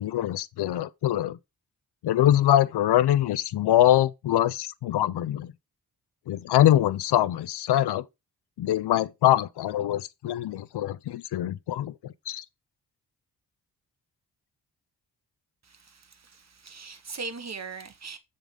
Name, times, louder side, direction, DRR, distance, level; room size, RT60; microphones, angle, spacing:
voice 1, 0.0-1.4 2.0-5.5 6.3-8.0 8.6-11.9 12.3-12.4, left 12 dB, 75° left, 0.6 m, -23 dB
voice 2, 15.6-18.2, right 4 dB, 40° right, 1.5 m, -40 dB
7.1 x 3.9 x 5.3 m
cardioid pair, 55°, 41 cm